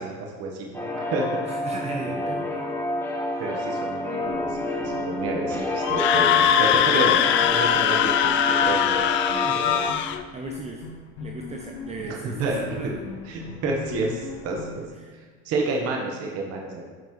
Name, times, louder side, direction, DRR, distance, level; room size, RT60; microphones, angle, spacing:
voice 1, 0.0-1.7 2.1-2.5 3.4-7.2 7.5-9.0 9.4-9.9 12.0-12.6 13.2-14.9 15.4-16.8, right 3 dB, 50° right, 0 dB, 1.2 m, -30 dB
sound 1, 0.7-9.9, left 1 dB, 5° left, 0.9 m, -29 dB
voice 2, 1.5-2.4 3.3-3.4 9.4-9.8 10.3-10.9 11.2-13.0 15.0-15.1, right 3 dB, 20° right, 0 dB, 0.6 m, -36 dB
sound 2, 4.2-6.8 7.1-7.2 7.4-9.0 9.3-9.4 9.6-14.9, left 5 dB, 85° left, 1.3 m, -40 dB
Screaming, 5.8-10.2, left 10 dB, 40° left, 0.4 m, -21 dB
9.1 x 5.9 x 3.2 m, 1.5 s
cardioid pair, 145°, 32 cm